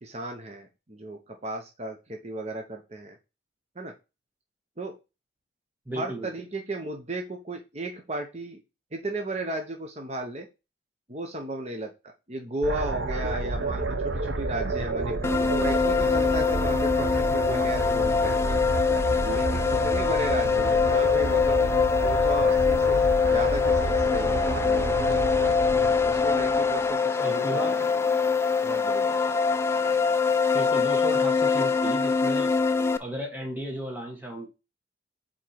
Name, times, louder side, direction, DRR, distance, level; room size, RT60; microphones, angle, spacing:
voice 1, 0.0-3.2 3.8-3.9 4.8-5.0 5.9-8.6 8.9-10.5 11.1-11.9 12.3-18.6 19.2-25.0 26.0-28.1 28.6-29.2, right 1 dB, 35° right, 3 dB, 0.9 m, -35 dB
voice 2, 5.8-6.3 27.2-27.9 30.5-32.5 33.0-34.5, right 1 dB, 10° right, 1 dB, 1.5 m, -34 dB
sound 1, 12.6-26.9, right 2 dB, 85° right, 0.9 m, -30 dB
sound 2, 15.2-33.0, left 5 dB, 15° left, 0.3 m, -23 dB
4.9 x 4.3 x 5.8 m, 0.27 s
head